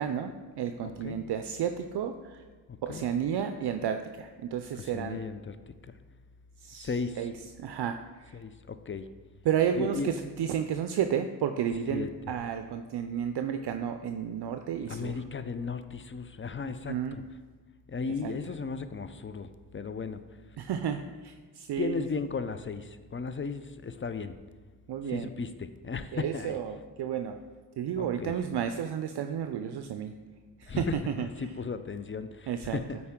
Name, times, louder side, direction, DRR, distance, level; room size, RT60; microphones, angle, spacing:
voice 1, 0.0-2.4 2.8-5.2 6.6-6.9 7.2-8.4 9.5-15.2 16.6-17.2 18.2-18.3 20.6-22.0 24.9-25.3 26.1-27.4 27.8-30.1 30.6-30.9 31.2-31.3 32.5-32.8, right 8 dB, 65° right, 7 dB, 0.5 m, -32 dB
voice 2, 0.8-1.3 2.7-3.0 4.8-5.6 5.8-5.9 6.7-7.3 8.3-9.1 9.7-10.1 11.9-12.1 14.9-17.2 17.9-20.2 21.8-24.4 25.0-26.6 28.0-28.4 30.7-33.0, left 5 dB, 30° left, 11 dB, 0.5 m, -36 dB
8.6 x 4.2 x 3.7 m, 1.4 s
supercardioid pair, 45°, 44 cm